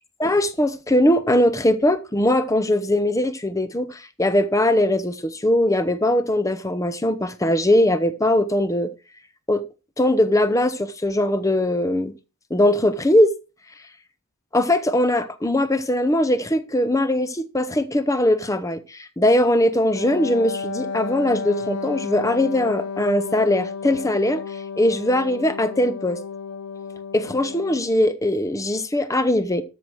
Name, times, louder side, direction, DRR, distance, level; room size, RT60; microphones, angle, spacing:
voice 1, 0.2-8.9 9.5-9.6 10.0-12.1 12.5-13.3 14.5-24.4 24.8-26.2 27.1-29.6, left 1 dB, 15° left, 0.8 m, -20 dB
Wind instrument woodwind instrument, 19.9-28.0, left 5 dB, 80° left, 0.7 m, -32 dB
13.0 x 6.4 x 4.7 m
head